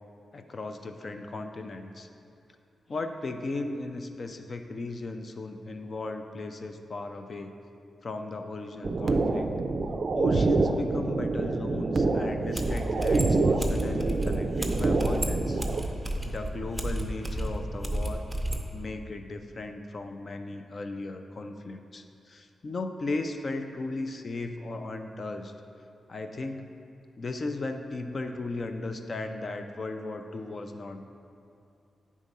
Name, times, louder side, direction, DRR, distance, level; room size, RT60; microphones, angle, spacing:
voice 1, 0.3-2.1 2.9-7.5 8.0-9.5 10.1-15.9 16.2-18.2 18.7-25.5 26.1-26.7 27.2-31.0, left 2 dB, 40° left, 6 dB, 0.4 m, -36 dB
sound 1, 8.8-15.8, right 3 dB, 40° right, 0.4 m, -26 dB
sound 2, 12.3-12.4 12.5-18.7, right 1 dB, 5° right, 0.7 m, -31 dB
9.4 x 3.6 x 5.3 m, 2.6 s
wide cardioid pair, 130°, 0 cm